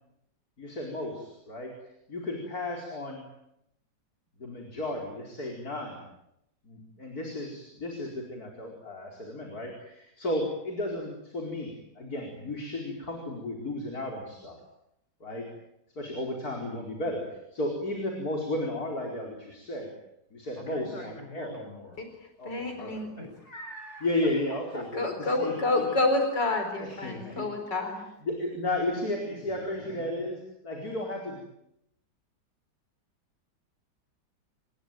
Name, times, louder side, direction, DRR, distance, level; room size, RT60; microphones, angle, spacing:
voice 1, 0.6-1.7 2.1-3.2 4.4-6.1 6.6-14.6 15.2-15.5 15.9-19.9 20.3-21.5 22.4-23.0 24.0-25.8 26.8-27.5 28.2-30.4 30.6-31.4, left 1 dB, 55° left, 1 dB, 5.1 m, -34 dB
voice 2, 20.6-22.0 23.2-24.1 24.7-25.4 27.3-27.4 29.2-30.3, left 1 dB, 40° left, 3 dB, 7.5 m, -44 dB
voice 3, 22.4-23.1 24.9-28.0, left 2 dB, 80° left, 5 dB, 5.0 m, -28 dB
27.5 x 21.0 x 9.2 m, 0.81 s
omnidirectional pair, 1.9 m